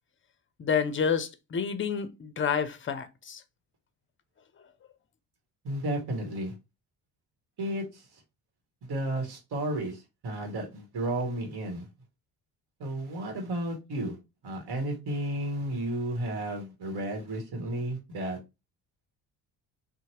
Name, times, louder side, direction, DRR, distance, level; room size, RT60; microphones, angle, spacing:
voice 1, 0.6-3.4, left 6 dB, 25° left, 0.5 m, -29 dB
voice 2, 5.6-6.5 7.6-8.0 8.8-11.8 12.8-14.2 14.4-18.4, right 1 dB, 55° right, 1.3 m, -33 dB
2.7 x 2.2 x 2.9 m
hypercardioid pair, 55°, 46 cm